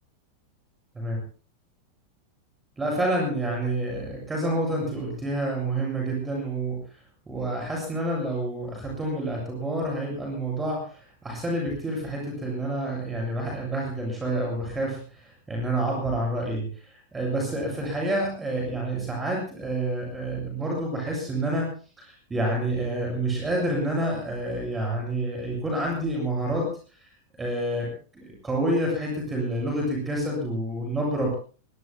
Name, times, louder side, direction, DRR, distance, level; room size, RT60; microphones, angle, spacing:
voice 1, 2.8-6.8 7.3-21.7 22.0-26.7 27.4-27.9 28.1-31.4, right 1 dB, 15° right, -1 dB, 7.9 m, -28 dB
24.5 x 22.0 x 2.2 m, 0.39 s
figure-of-eight pair, 90°, 0 cm